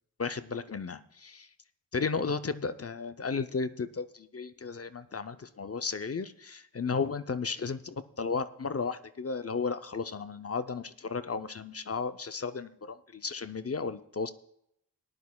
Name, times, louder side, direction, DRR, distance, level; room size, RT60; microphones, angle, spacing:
voice 1, 0.2-1.5 1.9-14.3, left 5 dB, 40° left, 11 dB, 0.5 m, -34 dB
18.5 x 10.5 x 2.3 m, 0.75 s
wide cardioid pair, 65°, 38 cm